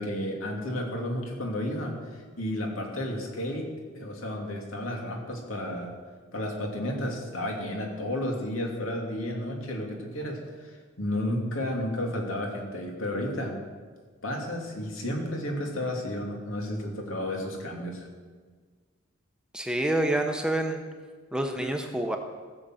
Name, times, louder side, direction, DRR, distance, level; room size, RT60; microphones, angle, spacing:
voice 1, 0.0-3.7 3.9-5.9 6.3-13.6 14.2-18.1, left 1 dB, 80° left, 1 dB, 2.8 m, -32 dB
voice 2, 19.5-20.8 21.3-22.2, right 1 dB, 5° right, 4 dB, 0.8 m, -27 dB
16.0 x 6.9 x 7.8 m, 1.5 s
head